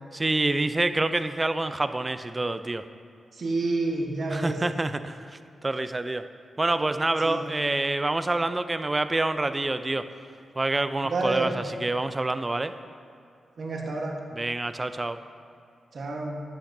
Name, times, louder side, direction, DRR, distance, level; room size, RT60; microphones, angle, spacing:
voice 1, 0.1-2.8 4.3-6.2 6.6-10.0 10.6-12.7 14.4-15.2, right 2 dB, 30° right, 11 dB, 0.4 m, -27 dB
voice 2, 3.3-4.6 7.2-7.5 11.0-11.6 13.6-14.2 15.9-16.4, right 2 dB, 60° right, 0 dB, 1.2 m, -29 dB
9.9 x 8.5 x 2.6 m, 2.3 s
supercardioid pair, 50°, 0 cm